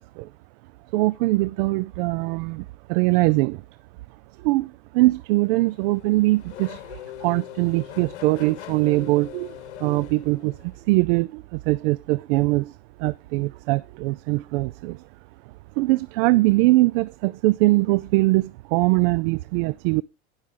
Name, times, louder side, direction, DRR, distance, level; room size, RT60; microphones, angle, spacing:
voice 1, 0.9-3.6 4.4-9.5 9.8-15.0 15.8-20.0, right 21 dB, 55° right, 0.5 m, -22 dB
Race car auto racing / Accelerating revving vroom, 5.3-10.9, left 13 dB, 75° left, 1.1 m, -41 dB
15.5 x 6.5 x 3.7 m
hypercardioid pair, 115°, 34 cm